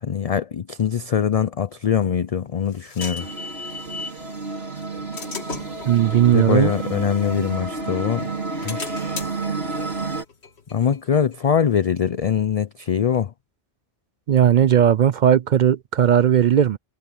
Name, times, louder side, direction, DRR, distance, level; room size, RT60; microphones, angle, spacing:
voice 1, 0.0-3.3 6.3-8.3 8.6-9.2 10.7-13.3, left 8 dB, 45° left, 0.5 m, -23 dB
sound 1, 2.0-4.2 4.8-7.9 8.3-11.7, left 3 dB, 90° left, 2.1 m, -38 dB
sound 2, 3.2-10.2, right 3 dB, 75° right, 3.7 m, -30 dB
voice 2, 5.9-6.7 14.3-16.8, right 10 dB, 55° right, 0.5 m, -17 dB
omnidirectional pair, 1.1 m